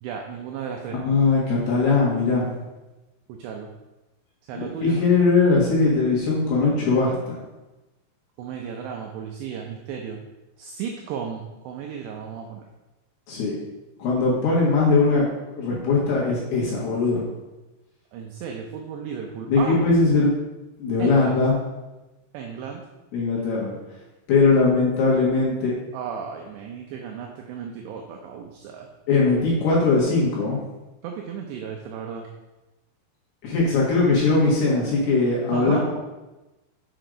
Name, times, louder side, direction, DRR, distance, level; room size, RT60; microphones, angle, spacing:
voice 1, 0.0-1.0 3.3-3.7 4.5-5.0 8.4-10.2 10.6-12.7 18.1-19.8 21.0-21.4 22.3-22.8 25.9-28.9 31.0-32.3 35.5-35.9, right 7 dB, 80° right, 1 dB, 2.7 m, -34 dB
voice 2, 1.0-2.5 4.5-7.4 13.3-13.5 14.0-17.2 19.5-20.3 20.8-21.6 23.1-23.7 24.3-25.7 29.1-30.6 33.4-35.9, left 3 dB, 65° left, -5 dB, 3.2 m, -20 dB
7.9 x 5.5 x 5.0 m, 1.1 s
omnidirectional pair, 5.5 m